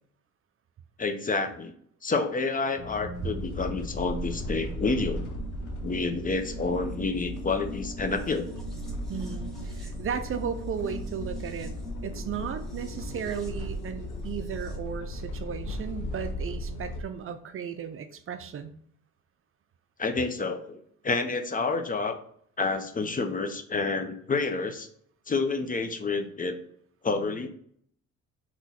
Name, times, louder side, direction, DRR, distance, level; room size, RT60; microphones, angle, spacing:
voice 1, 1.0-1.7 2.0-5.2 5.8-8.5 20.0-22.2 22.6-24.9 25.3-26.6 27.0-27.5, left 3 dB, 30° left, 7 dB, 0.6 m, -29 dB
sound 1, 2.7-14.8, left 1 dB, ahead, 1.1 m, -43 dB
sound 2, 3.1-17.0, equal, 90° left, 0.7 m, -37 dB
voice 2, 9.1-11.7 12.0-18.7, right 7 dB, 45° right, 9 dB, 0.4 m, -35 dB
3.9 x 3.0 x 4.1 m, 0.62 s
cardioid pair, 90°, 30 cm